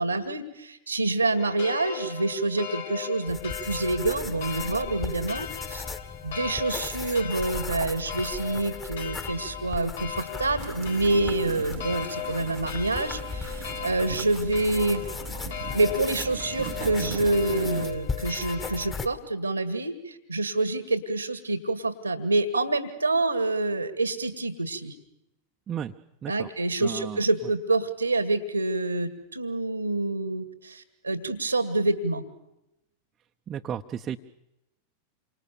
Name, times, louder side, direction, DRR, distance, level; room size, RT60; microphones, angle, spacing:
voice 1, 0.0-5.9 6.2-15.0 15.7-24.9 26.3-32.2, right 2 dB, 85° right, 11 dB, 1.9 m, -27 dB
sound 1, 1.4-19.1, left 9 dB, 55° left, 1.8 m, -38 dB
sound 2, 3.3-19.1, left 4 dB, 20° left, 2.0 m, -38 dB
sound 3, 10.6-17.9, right 15 dB, 50° right, 1.0 m, -40 dB
voice 2, 26.8-27.2 33.5-34.2, right 9 dB, 25° right, 3 dB, 1.0 m, -33 dB
28.5 x 25.5 x 7.0 m, 0.89 s
figure-of-eight pair, 90°, 0 cm